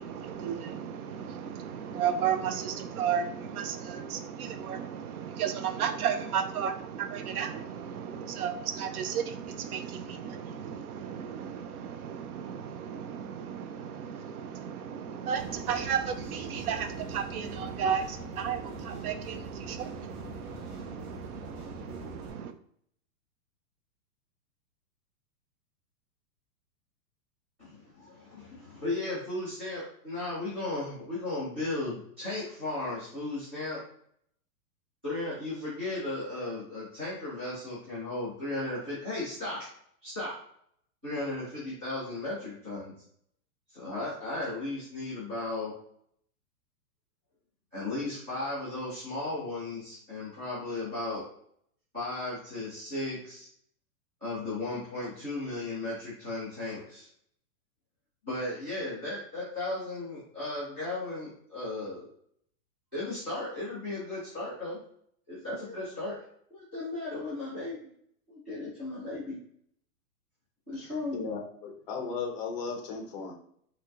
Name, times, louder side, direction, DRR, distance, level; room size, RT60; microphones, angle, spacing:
voice 1, 0.0-22.5, right 8 dB, 70° right, 9 dB, 0.6 m, -34 dB
sound 1, 15.2-22.3, left 2 dB, 5° left, 1.5 m, -46 dB
voice 2, 27.6-33.8 35.0-39.7 40.0-40.3 41.0-42.9 43.7-45.7 47.7-51.2 51.9-53.5 54.2-57.1 58.2-62.1 62.9-64.8 65.3-66.2 66.5-67.8 68.3-69.4 70.7-71.2, left 2 dB, 10° right, -14 dB, 0.3 m, -35 dB
voice 3, 70.7-73.3, left 5 dB, 30° left, 2 dB, 0.7 m, -36 dB
4.4 x 2.8 x 2.5 m, 0.65 s
hypercardioid pair, 155°, 46 cm